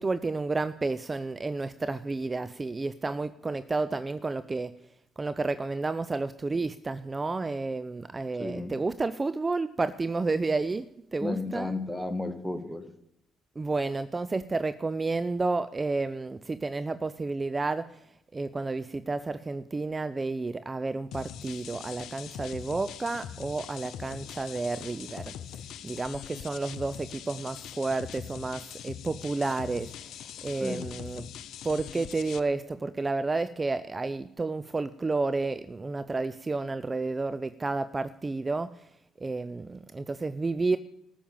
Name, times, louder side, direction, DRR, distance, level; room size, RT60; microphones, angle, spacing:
voice 1, 0.0-4.7 5.2-10.9 11.1-11.8 13.6-17.9 18.3-25.3 25.8-29.9 30.4-31.2 31.6-38.7 39.2-40.8, right 3 dB, 30° right, 14 dB, 0.5 m, -31 dB
voice 2, 8.4-8.8 11.2-12.9 30.5-30.9, left 2 dB, 5° left, 9 dB, 1.8 m, -33 dB
sound 1, 21.1-32.4, left 9 dB, 70° left, 0.6 m, -42 dB
14.0 x 7.1 x 9.0 m, 0.81 s
hypercardioid pair, 50°, 0 cm